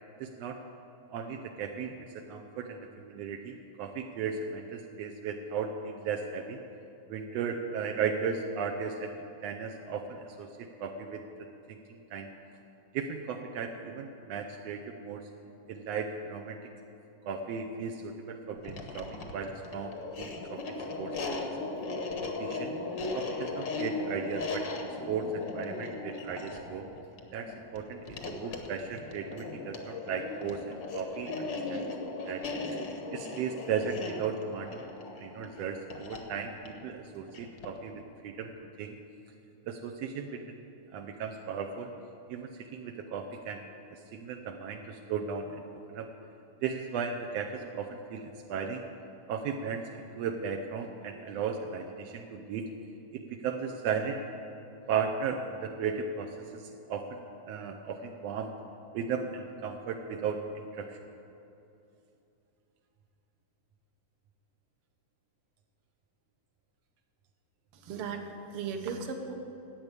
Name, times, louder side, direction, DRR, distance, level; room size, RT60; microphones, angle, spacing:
voice 1, 0.2-0.6 1.1-6.6 7.1-10.5 10.8-11.2 11.7-12.3 12.9-15.2 15.7-16.6 17.2-20.6 21.0-21.4 22.2-22.7 23.1-24.7 25.1-26.9 27.3-31.8 32.2-32.4 33.1-34.8 35.2-38.5 38.8-38.9 39.6-40.6 40.9-41.9 42.3-43.6 43.9-45.6 45.9-46.1 46.6-48.8 49.3-52.6 53.1-54.2 54.9-58.5 58.9-61.0, right 6 dB, 85° right, 3 dB, 1.4 m, -36 dB
sound 1, 18.6-37.9, left 3 dB, 70° left, 1.0 m, -38 dB
voice 2, 67.7-69.3, right 5 dB, 65° right, 5 dB, 1.5 m, -37 dB
12.5 x 8.7 x 8.1 m, 2.8 s
omnidirectional pair, 3.7 m